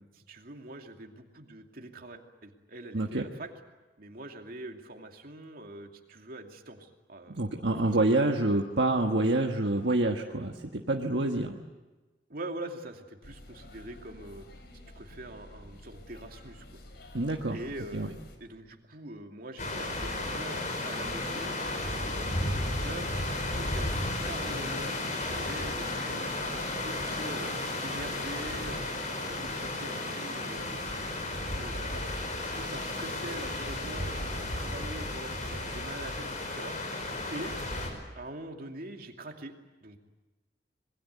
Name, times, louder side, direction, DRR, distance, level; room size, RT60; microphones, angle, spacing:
voice 1, 0.0-3.5 4.0-8.0 12.3-14.5 14.9-16.8 17.5-23.1 23.6-27.5 27.8-28.9 29.2-32.0 32.5-36.2 36.5-37.0 37.3-37.5 38.1-39.5 39.8-40.0, right 1 dB, 55° right, 3 dB, 2.6 m, -44 dB
voice 2, 2.9-3.2 7.3-11.6 17.1-17.6 17.9-18.1, right 2 dB, 75° right, 2 dB, 1.4 m, -27 dB
sound 1, 13.2-18.4, left 1 dB, 65° left, 4.4 m, -50 dB
sound 2, 19.6-37.9, left 2 dB, 45° left, 5.2 m, -33 dB
26.5 x 21.5 x 8.3 m, 1.2 s
head